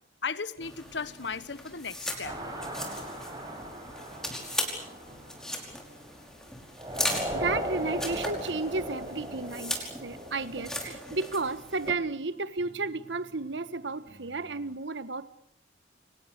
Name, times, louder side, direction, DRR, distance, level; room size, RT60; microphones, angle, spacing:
voice 1, 0.2-2.4, left 5 dB, 75° left, 1.3 m, -36 dB
sound 1, 0.5-14.8, right 1 dB, 55° right, 4.8 m, -55 dB
sound 2, 0.6-11.9, left 1 dB, 5° left, 5.2 m, -38 dB
sound 3, 2.2-6.2 6.8-10.9, equal, 20° right, 7.0 m, -37 dB
voice 2, 7.0-15.3, right 3 dB, 85° right, 1.5 m, -33 dB
30.0 x 25.5 x 6.8 m
head